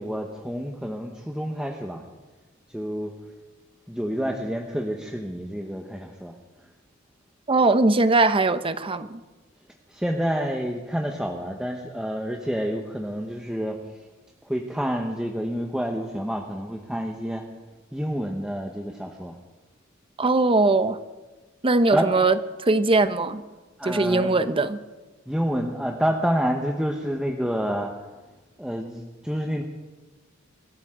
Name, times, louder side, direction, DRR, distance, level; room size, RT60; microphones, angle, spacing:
voice 1, 0.0-2.0 2.7-3.1 3.9-6.3 9.9-13.8 14.4-17.4 17.9-19.3 21.9-22.1 23.8-24.3 25.3-27.9 28.6-29.6, equal, 5° right, 1 dB, 1.0 m, -28 dB
voice 2, 7.5-9.2 20.2-21.0 21.6-23.4 23.8-24.8, right 3 dB, 25° right, 12 dB, 0.7 m, -21 dB
25.0 x 14.0 x 3.8 m, 1.2 s
head